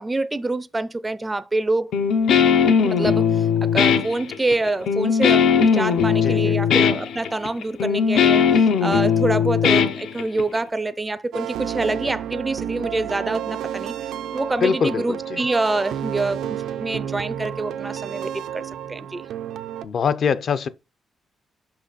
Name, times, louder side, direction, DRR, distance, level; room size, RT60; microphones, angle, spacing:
voice 1, 0.0-1.9 2.8-19.2, right 2 dB, 15° right, 0.4 m, -26 dB
Guitar, 1.9-10.6, left 7 dB, 80° left, 0.8 m, -19 dB
voice 2, 6.2-6.6 14.6-15.4 19.8-20.7, left 6 dB, 45° left, 0.5 m, -23 dB
sound 1, 11.3-19.9, right 10 dB, 90° right, 0.5 m, -31 dB
5.9 x 5.7 x 4.0 m
cardioid pair, 165°, 0 cm